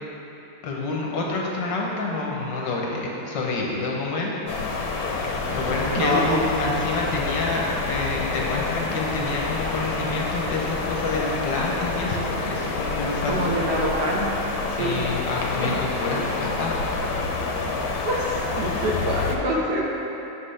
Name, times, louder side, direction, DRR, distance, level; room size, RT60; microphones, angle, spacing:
voice 1, 0.6-4.4 5.5-13.8 14.8-16.7, left 3 dB, 70° left, -2 dB, 1.6 m, -28 dB
sound 1, 4.5-19.4, left 3 dB, 90° left, 1.6 m, -28 dB
voice 2, 6.0-6.4 13.3-14.3 14.8-15.1 15.6-15.8 18.0-20.0, right 1 dB, 60° right, -3 dB, 1.5 m, -25 dB
7.9 x 7.6 x 3.3 m, 3.0 s
omnidirectional pair, 2.1 m